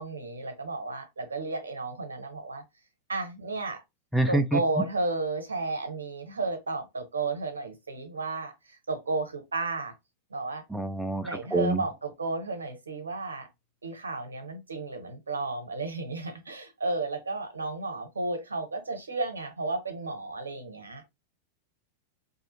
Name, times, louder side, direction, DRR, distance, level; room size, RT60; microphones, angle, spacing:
voice 1, 0.0-2.6 3.1-3.8 4.3-9.9 10.3-10.6 11.2-13.5 13.8-21.1, right 3 dB, 75° right, 0.8 m, -33 dB
voice 2, 4.1-4.6 10.7-11.8, right 1 dB, ahead, 0.3 m, -26 dB
2.7 x 2.4 x 2.7 m
figure-of-eight pair, 90°, 0 cm